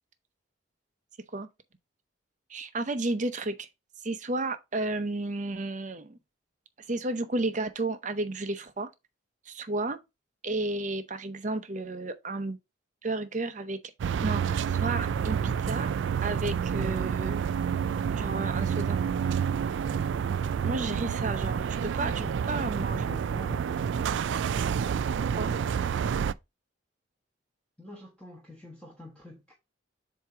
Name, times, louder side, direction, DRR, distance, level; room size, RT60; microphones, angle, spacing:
voice 1, 2.5-3.7 4.0-6.2 6.9-8.9 9.5-10.0 10.4-12.6 13.0-13.8 14.2-15.9 16.2-17.4 18.1-19.0 20.6-22.1 22.5-23.0 25.4-25.5, right 2 dB, 40° right, 0.8 m, -32 dB
sound 1, 14.0-26.3, right 7 dB, 70° right, 0.3 m, -29 dB
voice 2, 22.0-22.4 22.7-23.7 27.8-29.5, left 1 dB, 5° left, 1.3 m, -44 dB
7.4 x 2.9 x 4.8 m
head